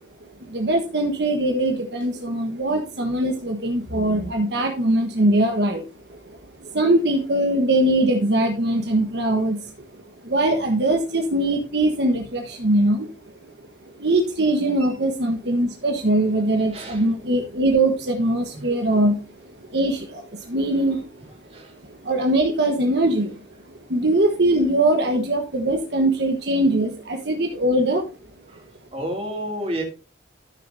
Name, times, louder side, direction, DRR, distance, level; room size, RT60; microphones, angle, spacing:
voice 1, 0.4-13.5 13.9-21.2 21.8-23.4 23.7-28.0, right 1 dB, 65° right, 3 dB, 1.3 m, -22 dB
voice 2, 16.7-17.0 18.5-18.6 21.5-21.7 28.5-28.6 28.9-29.8, equal, 30° right, 1 dB, 2.6 m, -30 dB
13.5 x 6.6 x 2.7 m, 0.34 s
head